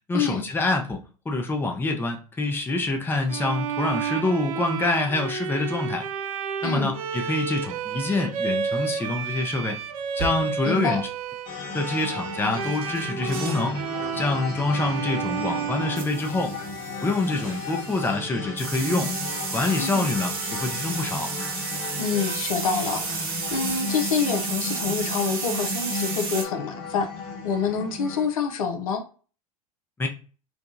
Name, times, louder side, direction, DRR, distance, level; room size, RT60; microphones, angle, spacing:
voice 1, 0.1-1.0 1.3-6.0 6.6-9.8 10.1-11.1 11.7-13.8 14.1-16.5 17.0-19.1 19.5-21.3 30.0-30.1, left 2 dB, 10° left, 3 dB, 0.6 m, -26 dB
Bowed string instrument, 3.3-16.7, right 7 dB, 70° right, 0.5 m, -31 dB
voice 2, 6.6-6.9 10.6-11.0 19.8-20.1 22.0-27.1 27.4-29.0, left 6 dB, 75° left, 6 dB, 0.7 m, -27 dB
sound 1, 10.2-10.7 12.4-13.7 14.1-14.4 16.0-18.1 18.6-26.4, right 5 dB, 55° right, 1.1 m, -33 dB
sound 2, 11.5-28.3, left 3 dB, 50° left, 1.6 m, -35 dB
4.6 x 2.3 x 2.6 m, 0.38 s
hypercardioid pair, 85°, 18 cm